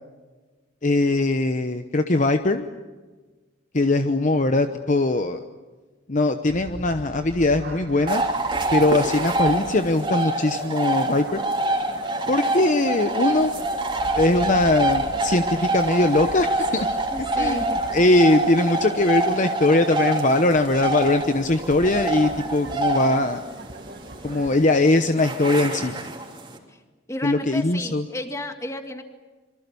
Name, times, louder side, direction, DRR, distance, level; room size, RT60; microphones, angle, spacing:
voice 1, 0.8-2.7 3.7-5.4 6.1-8.2 8.7-11.4 12.3-13.5 14.1-16.9 17.4-23.4 24.2-25.9 27.2-28.1, left 2 dB, 40° left, 8 dB, 0.9 m, -21 dB
sound 1, 6.5-24.7, right 1 dB, 55° right, 2.1 m, -42 dB
sound 2, 8.1-26.6, right 2 dB, 25° right, 3.1 m, -26 dB
voice 2, 17.1-17.8 26.7-26.8 27.1-29.0, left 1 dB, 15° left, 6 dB, 2.1 m, -33 dB
26.5 x 24.0 x 7.0 m, 1.3 s
head